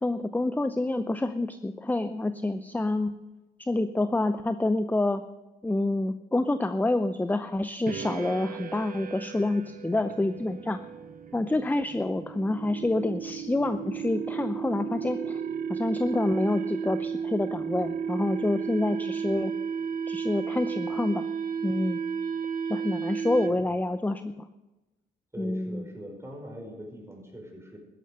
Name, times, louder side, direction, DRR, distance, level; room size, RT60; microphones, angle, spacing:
voice 1, 0.0-3.1 3.6-5.2 5.6-10.8 11.3-15.3 15.7-19.5 20.1-21.3 21.6-22.0 22.7-24.5 25.4-25.9, left 2 dB, 10° left, 11 dB, 0.6 m, -27 dB
sound 1, 7.9-23.8, right 6 dB, 45° right, 1.0 m, -33 dB
voice 2, 25.3-27.8, equal, 15° right, 1 dB, 5.2 m, -42 dB
13.5 x 11.0 x 6.7 m, 1.1 s
cardioid pair, 90°, 20 cm